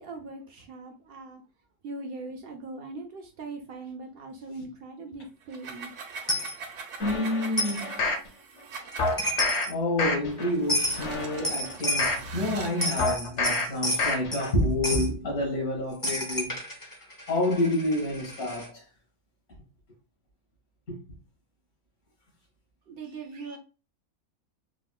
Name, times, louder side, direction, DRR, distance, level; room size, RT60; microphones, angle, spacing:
voice 1, 0.0-1.4 1.8-5.9 22.9-23.6, right 3 dB, 65° right, 0.5 m, -40 dB
sound 1, 5.4-9.5 10.3-13.1, right 5 dB, 80° right, 1.2 m, -42 dB
Coin (dropping), 6.3-6.5 7.6-7.8 8.9-9.0 9.2-9.7 10.7-11.0 11.4-12.2 12.7-14.5 14.8-15.1 16.0-18.7, equal, 25° left, 0.4 m, -30 dB
voice 2, 7.0-8.0 9.0-16.6 17.3-18.8 20.9-21.0, left 1 dB, 70° left, 1.9 m, -29 dB
sound 2, 7.0-8.3 9.0-9.6 10.0-10.5 10.9-12.3 13.0-13.6 14.0-14.5 14.9-15.0, left 2 dB, 55° left, 1.0 m, -28 dB
4.5 x 2.0 x 2.3 m
omnidirectional pair, 1.6 m